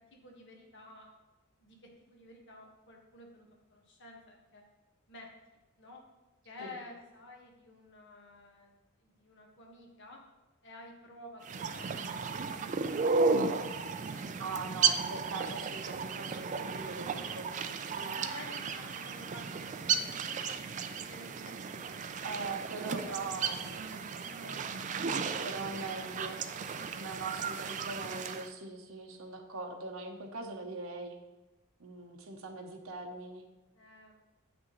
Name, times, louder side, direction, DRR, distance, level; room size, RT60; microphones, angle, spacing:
voice 1, 0.1-1.1 1.6-4.6 5.1-6.0 6.4-10.2 10.6-14.2 17.1-17.5 18.1-20.4 21.0-22.2 22.8-25.0 25.5-26.4 33.7-34.2, left 2 dB, 60° left, 0 dB, 1.4 m, -53 dB
sound 1, 11.4-28.5, right 5 dB, 35° right, 0.3 m, -34 dB
voice 2, 14.4-17.5 22.2-23.8 25.4-26.5 26.9-31.2 31.8-33.5, right 3 dB, 75° right, 2 dB, 0.9 m, -41 dB
8.1 x 6.2 x 3.1 m, 1.1 s
head